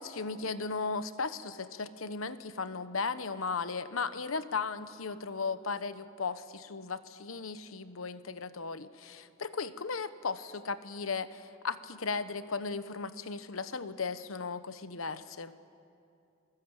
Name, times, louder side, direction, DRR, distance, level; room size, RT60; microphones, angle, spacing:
voice 1, 0.0-15.6, left 4 dB, 90° left, 12 dB, 1.0 m, -36 dB
29.0 x 21.0 x 8.1 m, 2.6 s
head